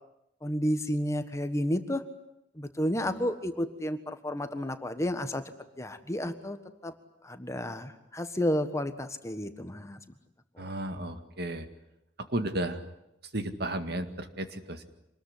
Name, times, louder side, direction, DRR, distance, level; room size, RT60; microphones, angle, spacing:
voice 1, 0.4-2.0 2.6-5.4 5.8-6.6 6.8-6.9 7.2-10.0 10.6-10.7, equal, 15° left, 9 dB, 1.5 m, -31 dB
voice 2, 10.6-11.7 12.2-12.8 13.3-14.8, right 1 dB, 60° right, 8 dB, 2.0 m, -33 dB
26.0 x 20.5 x 9.8 m, 0.86 s
head